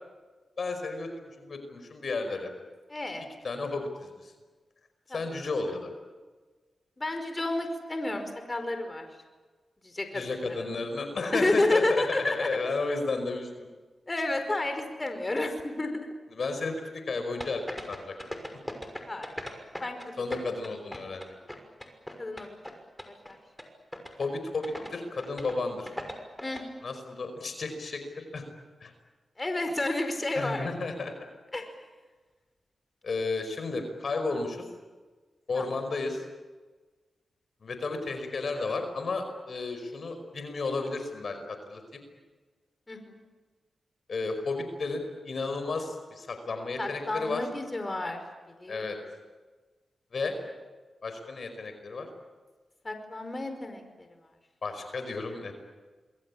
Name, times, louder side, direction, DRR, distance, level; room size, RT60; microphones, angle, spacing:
voice 1, 0.6-2.5 3.4-4.3 5.1-5.9 10.1-13.5 16.3-18.1 20.2-21.3 24.2-25.9 26.8-28.4 28.8-28.9 30.4-31.1 33.0-34.7 35.5-36.2 37.6-42.0 44.1-47.4 48.7-49.0 50.1-50.4 51.0-52.1 54.6-55.5, left 3 dB, 65° left, 7 dB, 5.2 m, -33 dB
voice 2, 2.9-3.2 5.1-5.2 7.0-9.0 9.8-10.6 11.3-12.5 14.1-16.1 19.1-19.3 19.8-20.4 22.2-22.6 23.0-23.4 26.4-26.6 29.4-30.9 31.5-31.7 35.5-35.6 42.9-43.2 46.8-48.2 48.6-48.8 52.8-54.1, left 2 dB, 30° left, 7 dB, 5.0 m, -31 dB
sound 1, 17.4-20.1 20.3-22.7 23.0-23.3 23.6-23.7 23.9-24.3 24.6-24.9 25.2-25.6 25.9-26.6, left 1 dB, 10° left, 6.0 m, -38 dB
28.0 x 22.0 x 8.7 m, 1.3 s
cardioid pair, 50°, 0 cm